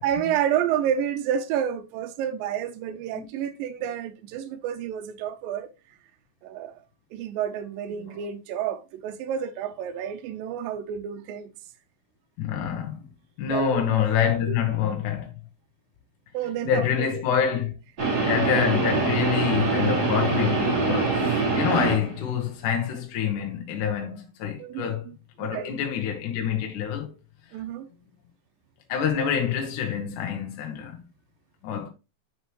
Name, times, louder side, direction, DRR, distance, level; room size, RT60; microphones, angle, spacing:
voice 1, 0.0-5.7 6.4-6.8 7.1-11.5 13.5-13.8 14.5-14.6 16.3-17.1 24.6-25.7 27.5-27.9, right 9 dB, 80° right, 2.2 m, -30 dB
voice 2, 12.4-13.1 13.4-15.3 16.7-17.7 18.2-21.2 21.5-25.1 25.4-27.1 28.9-31.0 31.6-31.9, left 8 dB, 65° left, 2.2 m, -26 dB
sound 1, 18.0-22.2, right 4 dB, 30° right, 2.1 m, -24 dB
6.4 x 6.3 x 3.1 m
omnidirectional pair, 4.6 m